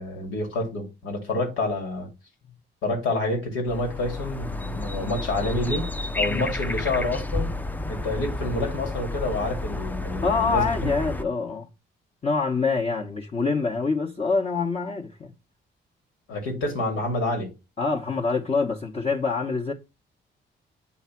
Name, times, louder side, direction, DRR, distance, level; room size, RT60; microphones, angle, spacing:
voice 1, 0.0-2.1 2.8-5.9 6.2-7.5 7.9-10.9 16.3-17.5, left 2 dB, 85° left, 2.3 m, -28 dB
sound 1, 3.7-11.2, left 2 dB, 10° left, 0.5 m, -31 dB
voice 2, 10.2-11.7 12.2-15.3 17.8-19.7, left 4 dB, 35° left, 1.1 m, -25 dB
8.4 x 3.2 x 4.4 m
cardioid pair, 90°, 20 cm